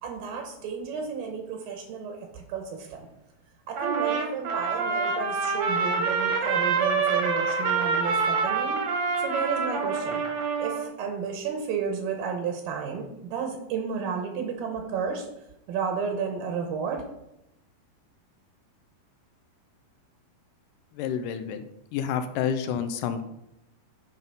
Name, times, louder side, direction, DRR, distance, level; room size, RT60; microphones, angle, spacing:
voice 1, 0.0-3.1 3.7-8.8 9.2-10.2 10.6-15.3 15.7-17.0, right 6 dB, 80° right, 3 dB, 2.7 m, -32 dB
Trumpet, 3.8-10.9, right 5 dB, 65° right, 1.8 m, -26 dB
voice 2, 21.0-21.6 21.9-23.2, left 8 dB, 80° left, 9 dB, 2.0 m, -29 dB
9.5 x 3.7 x 5.5 m, 0.84 s
omnidirectional pair, 4.2 m